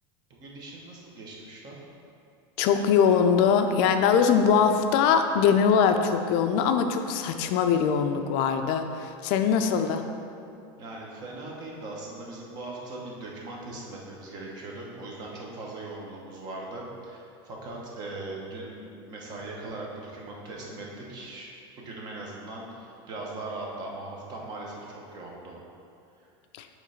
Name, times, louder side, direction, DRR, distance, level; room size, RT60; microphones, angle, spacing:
voice 1, 0.3-1.8 10.8-25.6 26.2-26.3, right 2 dB, 30° right, -2 dB, 1.0 m, -40 dB
voice 2, 2.6-10.0 26.5-26.7, left 6 dB, 50° left, 7 dB, 0.4 m, -22 dB
6.7 x 3.2 x 5.0 m, 2.5 s
supercardioid pair, 165°, 13 cm